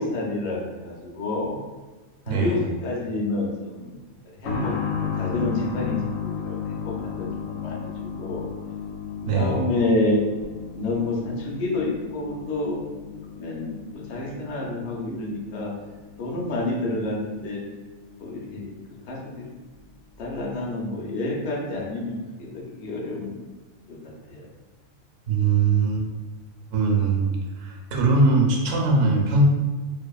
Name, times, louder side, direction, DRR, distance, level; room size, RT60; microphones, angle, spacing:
voice 1, 0.0-1.6 2.3-3.9 4.4-4.7 5.0-6.0 6.2-7.9 8.2-8.5 9.3-10.2 10.7-12.8 13.4-13.7 14.1-15.7 16.2-17.6 18.2-18.7 19.1-19.4 20.2-23.4 23.9-24.0 24.3-24.4, left 2 dB, 60° left, -3 dB, 0.8 m, -28 dB
sound 1, 4.4-18.9 19.1-19.2 20.2-20.3, left 7 dB, 90° left, 1.0 m, -34 dB
voice 2, 25.3-26.0 26.7-29.4, right 3 dB, 75° right, 0 dB, 0.9 m, -21 dB
2.7 x 2.4 x 2.3 m, 1.3 s
omnidirectional pair, 1.4 m